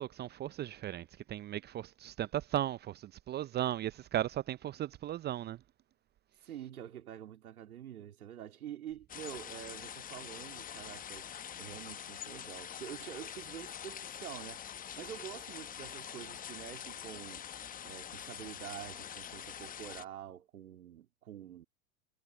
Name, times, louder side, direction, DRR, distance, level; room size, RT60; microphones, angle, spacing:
voice 1, 0.0-5.6, right 12 dB, 25° right, 0.7 m, -36 dB
voice 2, 6.4-11.3 11.6-17.4 17.8-21.7, right 11 dB, 70° right, 2.5 m, -47 dB
sound 1, 9.1-20.0, left 9 dB, 20° left, 1.0 m, -45 dB
figure-of-eight pair, 95°, 44 cm